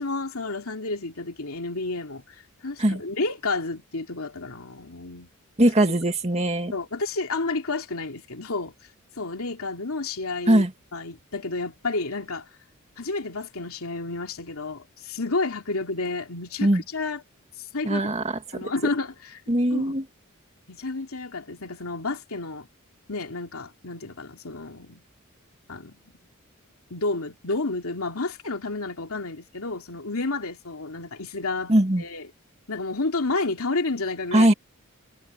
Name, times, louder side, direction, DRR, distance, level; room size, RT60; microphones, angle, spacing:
voice 1, 0.0-5.3 6.7-8.7 9.2-10.6 10.9-12.5 13.0-17.2 17.6-18.0 18.5-19.4 19.7-20.0 20.7-22.7 23.1-25.0 25.7-26.1 26.9-31.7 32.0-32.3 32.7-34.5, left 3 dB, 85° left, 2.7 m, -30 dB
voice 2, 5.6-6.7 10.5-10.7 16.6-16.8 17.8-18.2 18.6-18.7 19.5-20.0 31.7-32.0 34.3-34.5, right 1 dB, 30° right, 2.2 m, -20 dB
head